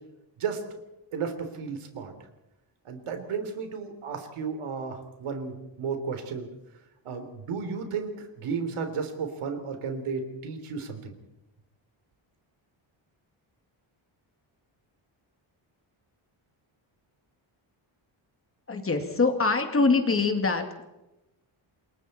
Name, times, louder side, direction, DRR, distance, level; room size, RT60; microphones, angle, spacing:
voice 1, 1.1-2.1 2.9-6.5 7.1-11.1, right 5 dB, 90° right, 6 dB, 3.5 m, -33 dB
voice 2, 18.7-20.9, left 3 dB, 25° left, 5 dB, 2.4 m, -24 dB
28.5 x 22.0 x 4.4 m, 0.96 s
wide cardioid pair, 155°, 49 cm